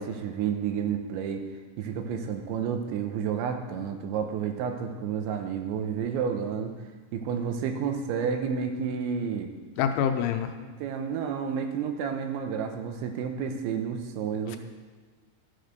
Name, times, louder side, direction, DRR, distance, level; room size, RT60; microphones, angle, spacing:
voice 1, 0.0-1.4 1.8-6.7 7.1-9.5 10.6-14.6, right 7 dB, 80° right, 6 dB, 3.2 m, -30 dB
voice 2, 9.8-10.5 14.5-14.6, left 8 dB, 90° left, 6 dB, 3.3 m, -26 dB
13.5 x 7.4 x 6.6 m, 1.5 s
omnidirectional pair, 5.4 m